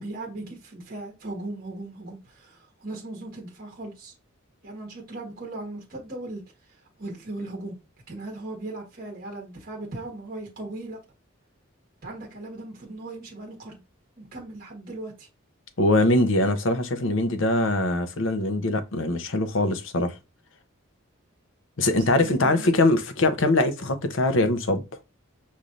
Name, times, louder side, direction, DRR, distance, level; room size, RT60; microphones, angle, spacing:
voice 1, 0.0-4.1 4.6-7.8 8.1-11.0 12.0-13.8 14.2-15.3 21.9-22.7, right 2 dB, 45° right, 1.4 m, -38 dB
voice 2, 15.8-20.1 21.8-24.8, left 2 dB, 65° left, 0.7 m, -22 dB
5.3 x 3.1 x 2.5 m
head